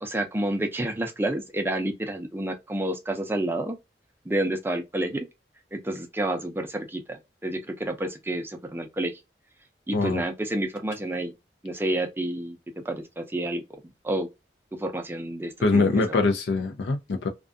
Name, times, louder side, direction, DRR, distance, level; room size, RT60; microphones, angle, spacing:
voice 1, 0.0-3.8 4.3-5.3 5.7-9.2 9.9-11.3 11.6-12.6 12.8-13.6 14.0-14.3 14.7-16.2, right 1 dB, 10° right, 0.4 m, -29 dB
voice 2, 15.6-17.3, left 3 dB, 80° left, 0.4 m, -23 dB
2.5 x 2.3 x 2.4 m
head